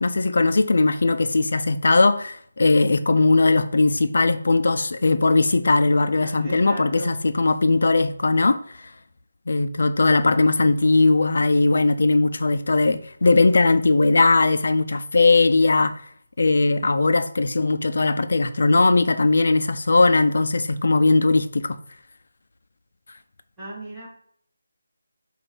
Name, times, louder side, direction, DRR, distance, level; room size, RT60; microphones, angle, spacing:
voice 1, 0.0-8.6 9.5-15.9 16.4-21.8, left 3 dB, 60° left, 0.6 m, -19 dB
voice 2, 6.2-7.2 23.6-24.1, right 2 dB, 5° right, 2.0 m, -37 dB
7.1 x 2.6 x 5.3 m
figure-of-eight pair, 170°, 0 cm